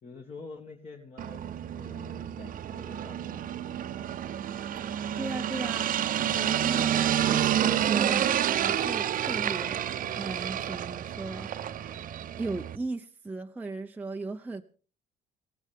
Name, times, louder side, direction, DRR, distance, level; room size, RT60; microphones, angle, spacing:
voice 1, 0.0-1.5 1.7-4.1, left 4 dB, 40° left, 2.1 m, -47 dB
sound 1, 1.2-12.8, right 10 dB, 55° right, 0.9 m, -29 dB
voice 2, 5.1-5.9 6.3-7.0 7.3-9.8 10.2-11.5 12.4-14.6, right 3 dB, 10° right, 0.7 m, -37 dB
21.0 x 16.5 x 3.6 m
cardioid pair, 110°, 17 cm